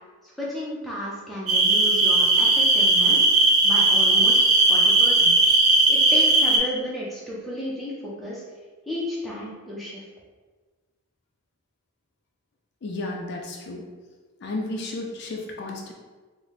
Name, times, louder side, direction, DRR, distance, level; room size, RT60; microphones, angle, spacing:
voice 1, 0.4-5.3 5.9-8.4 8.9-10.0, equal, ahead, -7 dB, 0.6 m, -33 dB
sound 1, 1.5-6.6, right 2 dB, 85° right, 0.6 m, -18 dB
voice 2, 12.8-13.8 14.4-15.9, left 2 dB, 55° left, 0 dB, 0.4 m, -32 dB
3.8 x 2.1 x 3.2 m, 1.4 s
head